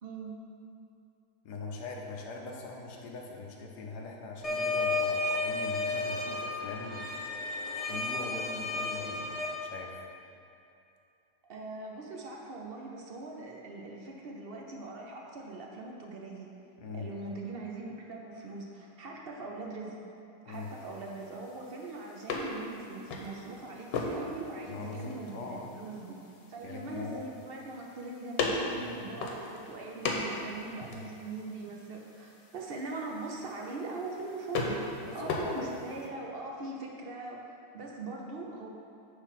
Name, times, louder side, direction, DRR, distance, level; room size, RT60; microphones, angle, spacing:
voice 1, 0.0-0.4 11.5-16.5 16.9-20.0 20.4-26.2 26.5-37.4 37.7-38.7, right 3 dB, 65° right, -1 dB, 0.5 m, -41 dB
voice 2, 1.4-7.2 7.8-10.0 16.8-17.1 20.5-20.7 24.0-24.2 24.7-25.8 26.6-27.2 28.7-29.3 30.9-31.0 35.0-35.9, left 3 dB, 70° left, 0 dB, 1.3 m, -42 dB
sound 1, 4.4-9.5, left 3 dB, 30° left, 0.7 m, -32 dB
sound 2, 20.5-36.1, left 3 dB, 85° left, 1.5 m, -39 dB
9.6 x 3.3 x 5.8 m, 2.7 s
omnidirectional pair, 1.9 m